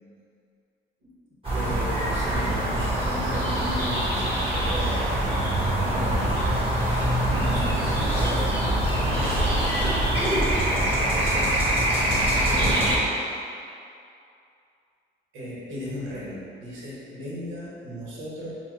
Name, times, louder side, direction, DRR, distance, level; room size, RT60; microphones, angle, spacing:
sound 1, 1.4-13.0, right 1 dB, 25° right, 1.5 m, -24 dB
voice 1, 1.5-5.1 5.9-6.3 7.3-8.5 8.9-9.7 10.7-11.7 12.4-13.0 15.3-18.5, equal, 85° right, -6 dB, 1.2 m, -36 dB
4.2 x 2.3 x 4.6 m, 2.5 s
cardioid pair, 90°, 20 cm